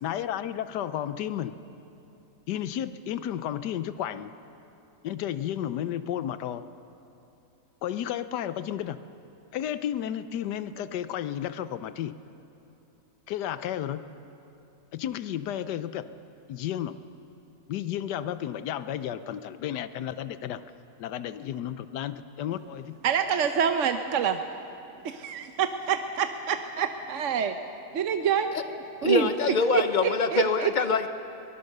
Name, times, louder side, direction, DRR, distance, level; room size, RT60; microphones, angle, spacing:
voice 1, 0.0-1.5 2.5-4.3 5.0-6.6 7.8-9.0 9.5-12.1 13.3-14.0 14.9-16.1 16.5-17.0 17.7-20.6 21.0-23.0, left 10 dB, 90° left, 13 dB, 1.3 m, -32 dB
voice 2, 23.0-24.4 25.0-27.5 27.9-28.5 29.0-29.3 29.7-30.7, right 7 dB, 60° right, 7 dB, 1.0 m, -26 dB
voice 3, 29.0-31.1, left 4 dB, 55° left, 10 dB, 0.5 m, -25 dB
23.5 x 18.5 x 6.6 m, 2.9 s
omnidirectional pair, 1.7 m